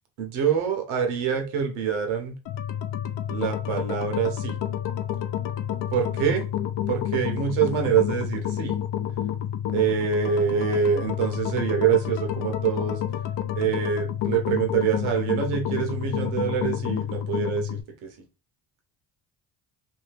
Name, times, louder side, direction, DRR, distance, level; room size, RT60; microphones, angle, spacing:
voice 1, 0.2-2.3 3.3-4.6 5.9-6.4 6.9-8.8 9.7-13.0 13.5-18.1, right 8 dB, 85° right, 4 dB, 0.9 m, -25 dB
sound 1, 2.5-17.8, left 10 dB, 65° left, 0.6 m, -29 dB
2.7 x 2.7 x 3.3 m, 0.30 s
supercardioid pair, 65°, 46 cm